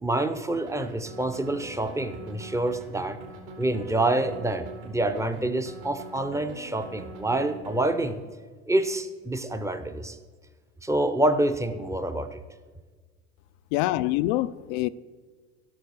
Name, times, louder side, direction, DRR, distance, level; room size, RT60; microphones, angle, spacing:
voice 1, 0.0-3.2 3.6-8.2 8.7-10.2 10.8-12.4, right 1 dB, 5° right, 0.7 m, -27 dB
sound 1, 0.5-8.1, right 2 dB, 65° right, 3.2 m, -43 dB
voice 2, 13.7-14.9, left 16 dB, 45° left, 0.5 m, -25 dB
16.0 x 6.6 x 4.8 m
hypercardioid pair, 85°, 46 cm